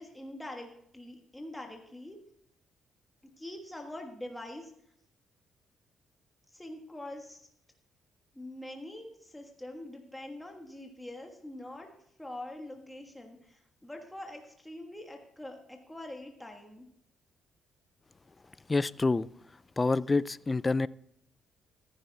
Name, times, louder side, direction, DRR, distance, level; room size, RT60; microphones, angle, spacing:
voice 1, 0.0-2.2 3.4-4.7 6.5-7.5 8.3-11.9 12.2-16.9, left 1 dB, 5° left, 1.5 m, -44 dB
voice 2, 18.7-19.3 19.8-20.9, left 3 dB, 25° left, 0.3 m, -27 dB
14.5 x 10.5 x 3.4 m
cardioid pair, 90°, 0 cm